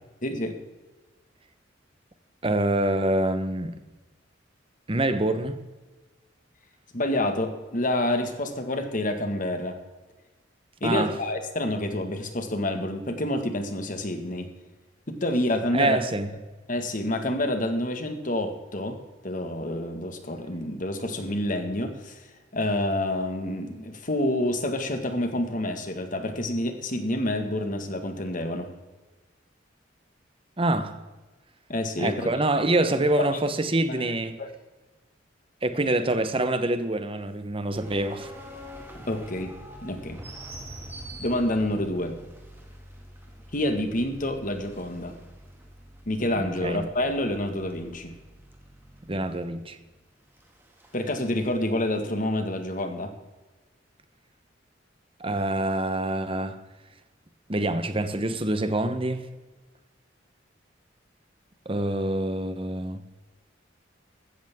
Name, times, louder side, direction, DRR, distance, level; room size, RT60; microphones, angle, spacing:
voice 1, 0.2-0.6 6.9-9.8 10.8-14.5 15.1-16.0 16.7-19.0 19.2-22.2 22.5-28.7 31.7-32.3 33.2-33.3 34.4-34.5 39.1-39.5 39.8-40.2 41.2-42.2 43.5-45.2 46.1-48.2 50.9-53.1, left 1 dB, 45° left, 1.7 m, -28 dB
voice 2, 2.4-3.8 4.9-5.6 10.8-11.2 15.7-16.3 30.6-31.0 32.0-34.4 35.6-38.3 46.4-46.9 49.1-49.8 55.2-56.6 57.5-59.3 61.6-63.0, right 1 dB, 30° right, 1.0 m, -26 dB
sound 1, 37.7-51.6, equal, 10° right, 2.1 m, -46 dB
15.5 x 13.5 x 3.7 m
head